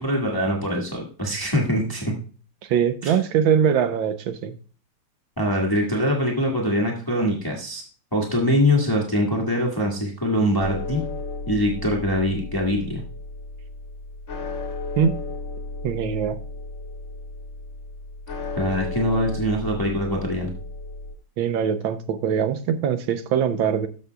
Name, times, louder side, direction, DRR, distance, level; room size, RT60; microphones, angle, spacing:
voice 1, 0.0-2.1 3.0-3.2 5.4-7.8 8.1-11.0 11.5-13.0 18.6-20.5, equal, 10° left, -1 dB, 1.4 m, -23 dB
voice 2, 2.7-4.5 15.0-15.1 15.8-16.4 21.4-23.9, right 8 dB, 80° right, 10 dB, 1.5 m, -22 dB
sound 1, 10.6-21.1, left 3 dB, 40° left, 1.6 m, -34 dB
12.5 x 6.7 x 2.3 m, 0.39 s
omnidirectional pair, 2.2 m